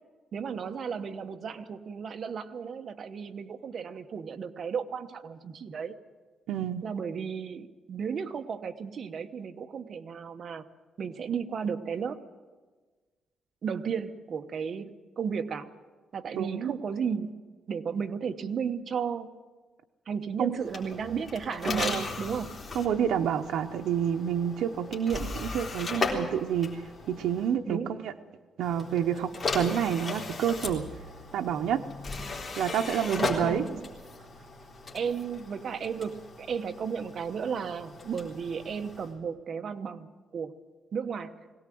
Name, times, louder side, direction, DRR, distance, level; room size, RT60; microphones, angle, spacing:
voice 1, 0.3-5.9 6.8-10.6 11.0-12.2 13.6-15.7 16.1-19.3 20.1-22.6 27.6-28.0 33.1-33.9 34.9-40.5 40.9-41.3, right 6 dB, 45° right, 7 dB, 1.1 m, -34 dB
voice 2, 6.5-6.9 16.3-16.7 20.4-20.6 21.6-22.0 22.7-28.1 28.6-30.9 31.3-31.8 32.6-33.6, right 9 dB, 90° right, 5 dB, 0.8 m, -29 dB
sound 1, 20.6-27.5 28.6-39.1, left 3 dB, 30° left, 3.8 m, -37 dB
21.0 x 17.5 x 7.7 m, 1.4 s
cardioid pair, 140°, 0 cm